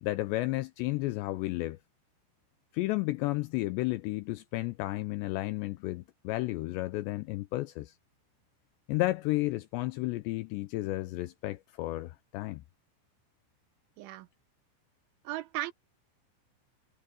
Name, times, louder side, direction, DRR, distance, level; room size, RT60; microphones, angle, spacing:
voice 1, 0.0-1.8 2.7-7.9 8.9-12.6, left 19 dB, 85° left, 2.5 m, -32 dB
voice 2, 14.0-14.3 15.2-15.7, right 15 dB, 80° right, 3.3 m, -36 dB
omnidirectional pair, 5.6 m